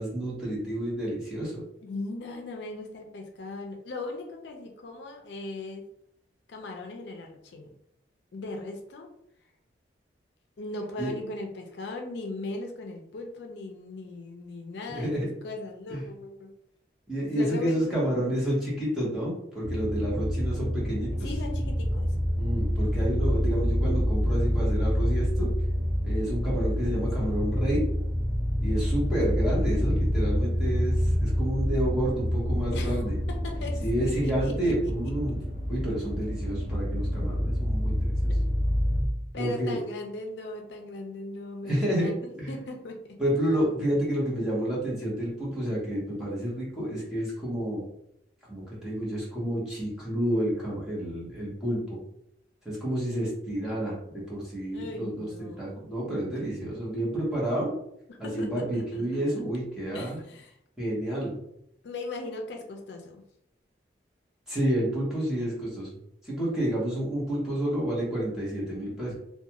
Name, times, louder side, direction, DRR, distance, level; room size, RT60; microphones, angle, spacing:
voice 1, 0.0-1.6 11.0-11.1 14.9-15.3 15.9-16.0 17.1-21.1 22.4-25.5 26.0-27.8 28.6-33.1 33.8-35.4 35.7-38.1 39.3-39.8 41.6-42.1 42.4-42.5 43.2-47.8 48.5-52.0 52.6-57.7 58.2-60.2 60.8-61.4 64.5-66.0 66.2-69.1, right 1 dB, 5° right, -7 dB, 0.9 m, -29 dB
voice 2, 1.8-5.9 6.5-7.7 8.3-9.1 10.6-16.5 17.2-18.2 19.7-19.8 21.2-22.2 32.7-34.9 35.3-35.4 38.3-38.5 39.3-43.2 54.7-55.9 58.1-59.2 59.9-60.6 61.8-63.2, left 2 dB, 70° left, 2 dB, 0.4 m, -38 dB
sound 1, 19.6-39.0, equal, 45° right, 0.9 m, -27 dB
2.4 x 2.2 x 2.8 m, 0.75 s
head